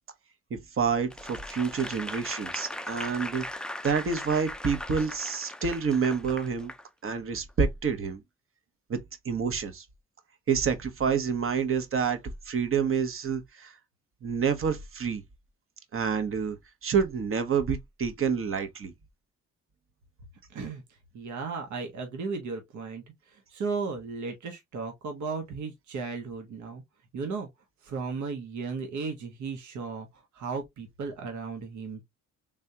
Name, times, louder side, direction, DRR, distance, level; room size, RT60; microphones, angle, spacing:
voice 1, 0.5-3.5 3.8-6.7 7.0-8.2 8.9-9.0 9.2-9.8 10.5-12.2 12.4-13.7 14.2-15.2 15.9-16.6 16.8-18.9, right 6 dB, 45° right, 1.1 m, -28 dB
Applause / Crowd, 1.1-6.8 7.4-7.5, left 1 dB, 5° left, 0.3 m, -39 dB
voice 2, 20.5-20.8 21.1-26.8 27.1-27.5 27.8-30.1 30.3-32.0, right 4 dB, 70° right, 1.3 m, -35 dB
3.5 x 3.2 x 2.7 m
cardioid pair, 90°, 30 cm